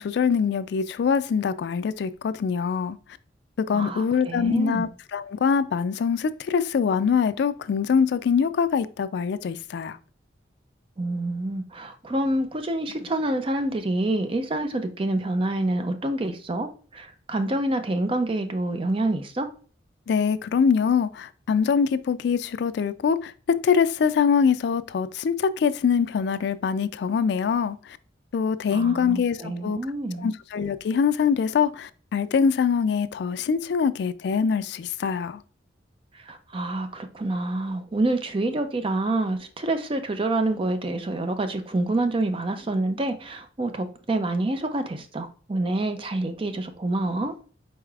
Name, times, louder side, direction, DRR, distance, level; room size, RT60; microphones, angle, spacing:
voice 1, 0.0-3.0 3.6-10.0 20.1-28.0 28.3-29.8 30.2-35.4, left 6 dB, 60° left, 0.3 m, -24 dB
voice 2, 3.7-4.9 11.0-19.5 28.7-30.3 36.1-47.3, right 2 dB, 30° right, 0.5 m, -27 dB
4.8 x 4.1 x 2.3 m
head